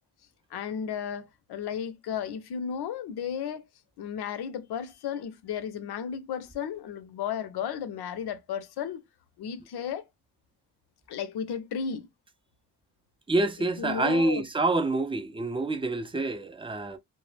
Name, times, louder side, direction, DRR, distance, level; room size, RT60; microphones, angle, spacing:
voice 1, 0.5-3.6 4.0-9.0 9.4-10.0 11.1-12.1 13.8-14.5, left 8 dB, 70° left, 0.6 m, -34 dB
voice 2, 13.3-17.0, right 2 dB, 15° right, 0.4 m, -27 dB
2.1 x 2.0 x 3.2 m
cardioid pair, 65°, 40 cm